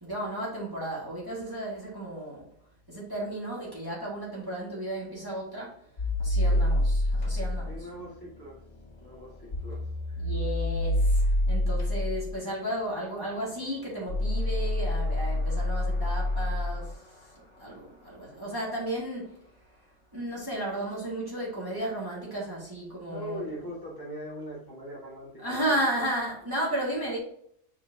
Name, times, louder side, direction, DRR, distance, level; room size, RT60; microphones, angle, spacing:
voice 1, 0.0-2.5 2.9-5.9 6.2-7.9 9.1-9.2 10.2-19.4 20.1-23.4 25.4-27.2, right 1 dB, 20° right, 2.0 m, -34 dB
sound 1, 6.0-17.2, left 1 dB, 65° left, 2.1 m, -28 dB
voice 2, 7.7-8.6 9.0-10.3 23.1-25.8, equal, 15° left, 1.9 m, -41 dB
7.4 x 4.4 x 2.8 m
omnidirectional pair, 1.3 m